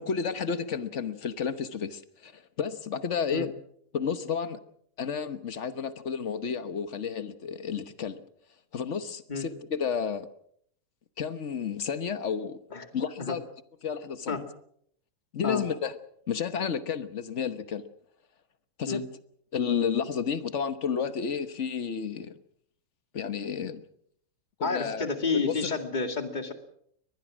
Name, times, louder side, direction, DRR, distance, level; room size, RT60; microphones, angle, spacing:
voice 1, 0.0-3.5 3.9-4.6 5.0-8.2 8.7-10.3 11.2-12.6 12.9-13.4 13.8-14.4 15.3-15.9 16.3-17.8 18.8-19.0 19.5-22.3 23.1-23.8 24.6-25.1 25.3-25.7, left 6 dB, 45° left, 12 dB, 1.1 m, -31 dB
voice 2, 24.6-26.5, left 4 dB, 20° left, 7 dB, 2.1 m, -30 dB
23.0 x 20.0 x 6.2 m, 0.67 s
omnidirectional pair, 2.4 m